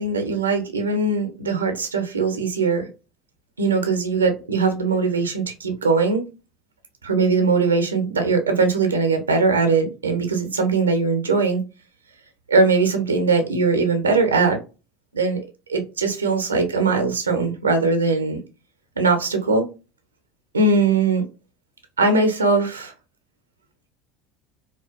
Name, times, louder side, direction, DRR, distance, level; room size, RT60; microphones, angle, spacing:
voice 1, 0.0-2.9 3.6-6.2 7.0-11.6 12.5-14.6 15.1-15.4 15.7-18.4 19.0-19.6 20.5-21.2 22.0-22.9, right 4 dB, 90° right, 5 dB, 0.6 m, -20 dB
2.4 x 2.3 x 2.4 m, 0.30 s
hypercardioid pair, 70°, 0 cm